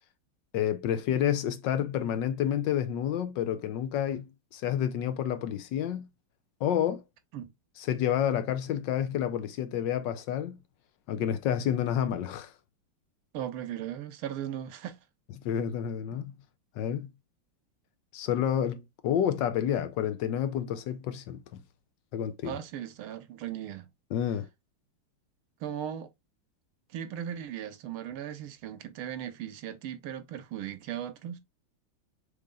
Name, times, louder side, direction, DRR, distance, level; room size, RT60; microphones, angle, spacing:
voice 1, 0.5-6.1 6.6-7.0 7.8-10.6 11.1-12.5 15.4-16.3 16.8-17.1 18.1-21.6 22.1-22.6 24.1-24.5, left 9 dB, 70° left, 1.2 m, -29 dB
voice 2, 13.3-15.0 22.4-23.9 25.6-26.1 26.9-31.4, right 10 dB, 85° right, 1.7 m, -37 dB
6.4 x 3.4 x 2.2 m
omnidirectional pair, 2.3 m